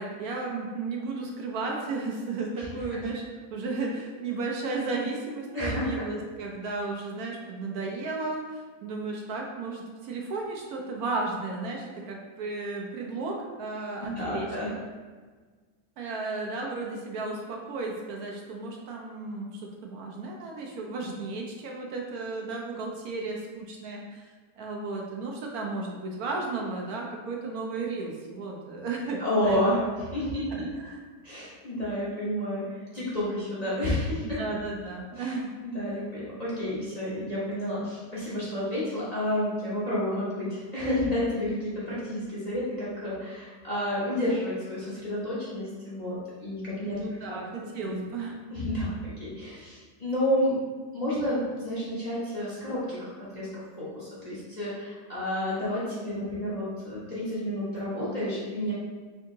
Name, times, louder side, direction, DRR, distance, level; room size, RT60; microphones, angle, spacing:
voice 1, 0.0-3.2 3.5-14.5 16.0-29.6 30.6-31.0 34.2-35.5 35.9-36.0 46.8-48.4, right 3 dB, 70° right, -1 dB, 1.0 m, -34 dB
voice 2, 5.5-6.1 14.0-14.7 29.2-30.5 31.2-34.4 35.1-35.3 35.6-47.0 47.3-47.4 47.8-48.0 48.5-50.6 50.9-58.7, left 1 dB, 35° left, -9 dB, 0.7 m, -30 dB
3.5 x 2.8 x 3.6 m, 1.4 s
omnidirectional pair, 1.7 m